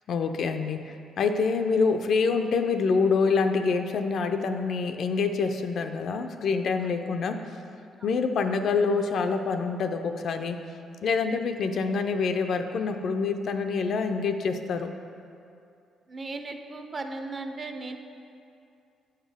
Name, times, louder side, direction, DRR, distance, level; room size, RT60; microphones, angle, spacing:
voice 1, 0.1-7.4 8.0-10.6 11.0-14.9, left 4 dB, 65° left, 7 dB, 0.4 m, -26 dB
voice 2, 16.1-18.0, right 3 dB, 35° right, 5 dB, 0.5 m, -36 dB
8.6 x 4.4 x 3.4 m, 2.5 s
cardioid pair, 90°, 0 cm